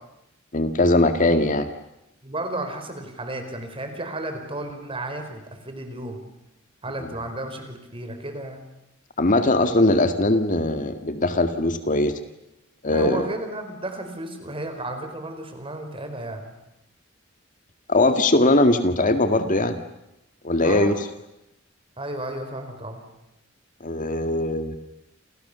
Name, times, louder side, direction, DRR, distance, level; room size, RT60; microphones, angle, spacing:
voice 1, 0.5-1.7 7.0-7.1 9.2-12.2 12.8-13.2 17.9-19.8 20.4-21.0 23.8-24.8, left 2 dB, 40° left, 8 dB, 1.9 m, -20 dB
voice 2, 2.2-6.2 6.8-8.6 12.9-16.5 20.6-21.0 22.0-23.0, right 1 dB, 30° right, 6 dB, 4.9 m, -33 dB
29.5 x 29.0 x 7.0 m, 0.88 s
head